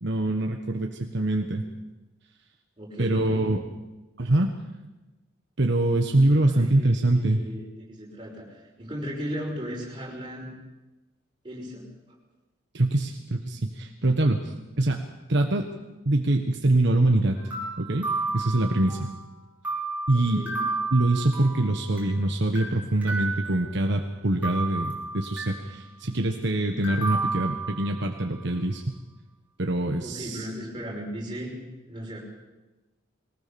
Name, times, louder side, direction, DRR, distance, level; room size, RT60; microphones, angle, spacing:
voice 1, 0.0-1.6 3.0-3.6 4.2-4.5 5.6-7.4 12.7-15.0 15.3-15.7 16.0-17.4 17.8-18.1 18.3-19.1 20.1-20.4 20.9-28.9 29.6-30.5, right 1 dB, 60° right, 4 dB, 1.3 m, -24 dB
voice 2, 2.8-3.5 6.3-10.5 11.4-12.1 20.1-20.6 30.0-31.5 31.9-32.2, equal, 25° right, -2 dB, 5.6 m, -37 dB
sound 1, 17.4-19.2 19.6-22.2 22.6-24.0 24.4-25.8 26.8-28.3, right 3 dB, 10° right, 5.6 m, -32 dB
22.0 x 19.0 x 7.0 m, 1.1 s
head